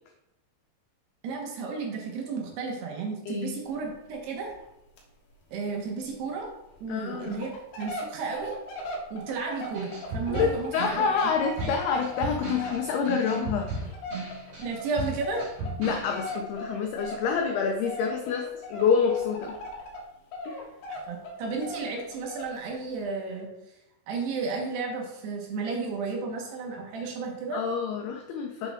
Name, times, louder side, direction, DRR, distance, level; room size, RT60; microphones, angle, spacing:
voice 1, 1.2-4.5 5.5-6.5 6.8-7.5 7.8-8.6 9.1-11.1 11.6-11.8 14.6-15.4 20.9-23.8 24.1-27.6, right 4 dB, 70° right, 0 dB, 2.9 m, -33 dB
sound 1, 3.7-4.1 4.5-4.7 5.0-5.1 5.4-5.5 6.1-6.2 6.7-6.8 7.2-20.1 20.3-22.6 23.0-23.1, equal, 65° left, 3.1 m, -39 dB
voice 2, 6.9-7.5 10.3-13.7 15.8-19.6 20.4-20.6 27.5-28.7, left 6 dB, 85° left, 2 dB, 2.2 m, -27 dB
sound 2, 9.7-16.3, right 2 dB, 40° right, 3.6 m, -35 dB
8.4 x 7.3 x 3.5 m, 0.90 s
omnidirectional pair, 5.5 m